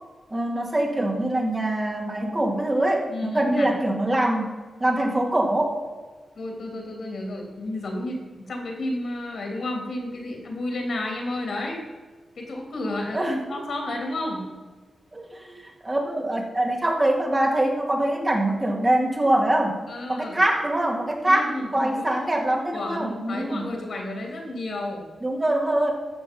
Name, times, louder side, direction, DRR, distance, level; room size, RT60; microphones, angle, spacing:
voice 1, 0.3-4.5 4.8-5.8 13.1-13.4 15.1-19.8 20.1-23.6 25.2-25.9, right 1 dB, 25° right, 0 dB, 2.1 m, -24 dB
voice 2, 3.1-3.7 6.3-11.8 12.3-14.4 19.9-20.4 21.2-22.1 22.7-25.1, left 1 dB, 65° left, 1 dB, 3.0 m, -31 dB
14.5 x 6.1 x 5.3 m, 1.3 s
cardioid pair, 90°, 0 cm